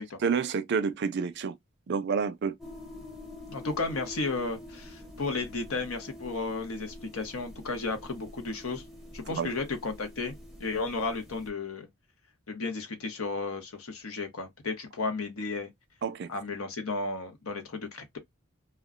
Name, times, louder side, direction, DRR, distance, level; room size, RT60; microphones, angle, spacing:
voice 1, 0.2-1.6 1.9-2.5 9.3-9.5 16.0-16.3, right 5 dB, 55° right, 0.4 m, -29 dB
sound 1, 2.6-11.5, left 1 dB, ahead, 0.6 m, -46 dB
voice 2, 3.5-8.8 9.1-10.3 10.6-11.9 12.5-15.7 16.3-18.2, left 3 dB, 85° left, 0.9 m, -33 dB
2.3 x 2.1 x 3.6 m
head